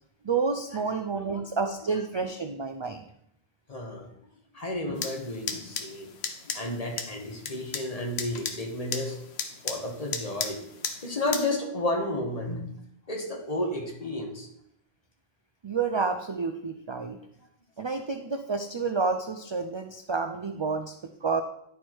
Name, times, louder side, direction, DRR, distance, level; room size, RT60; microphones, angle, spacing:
voice 1, 0.2-3.0 15.6-17.2 17.8-21.4, right 4 dB, 45° right, 6 dB, 0.3 m, -29 dB
voice 2, 3.7-4.1 4.5-6.1 6.5-9.2 9.6-10.6 11.0-12.6 13.1-14.5, left 1 dB, 35° left, 2 dB, 1.3 m, -32 dB
sound 1, 5.0-11.4, left 6 dB, 75° left, 1.1 m, -36 dB
10.5 x 4.6 x 4.5 m, 0.75 s
omnidirectional pair, 1.1 m